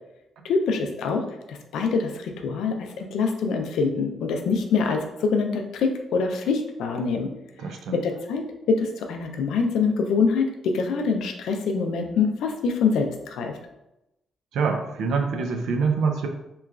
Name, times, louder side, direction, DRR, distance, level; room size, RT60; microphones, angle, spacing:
voice 1, 0.4-7.3 7.9-13.6, left 4 dB, 85° left, 5 dB, 0.3 m, -25 dB
voice 2, 7.6-8.0 14.5-16.3, right 5 dB, 80° right, 3 dB, 0.4 m, -25 dB
2.9 x 2.3 x 2.3 m, 0.91 s
cardioid pair, 135°, 0 cm